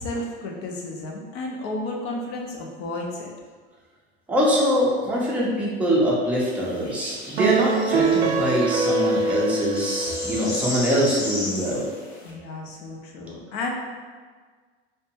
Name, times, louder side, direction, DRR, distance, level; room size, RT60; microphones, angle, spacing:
voice 1, 0.0-3.3 12.2-13.7, left 2 dB, 45° left, 0 dB, 0.6 m, -32 dB
voice 2, 4.3-11.9, equal, 5° right, -6 dB, 0.6 m, -23 dB
sound 1, 6.4-12.3, left 1 dB, 60° left, 1.1 m, -35 dB
sound 2, 7.4-10.9, right 3 dB, 80° right, 0.5 m, -24 dB
2.6 x 2.2 x 2.8 m, 1.5 s
hypercardioid pair, 90°, 34 cm